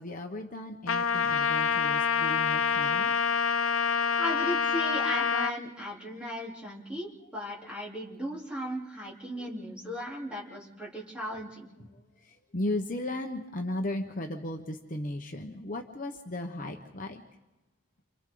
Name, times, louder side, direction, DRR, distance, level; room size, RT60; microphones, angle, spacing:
voice 1, 0.0-3.1 7.6-7.7 9.4-9.6 12.1-17.2, left 1 dB, 40° left, 3 dB, 1.1 m, -36 dB
Trumpet, 0.9-5.5, left 6 dB, 85° left, 0.7 m, -26 dB
voice 2, 4.2-11.7, equal, 5° right, -5 dB, 3.5 m, -36 dB
30.0 x 28.0 x 3.9 m, 1.1 s
head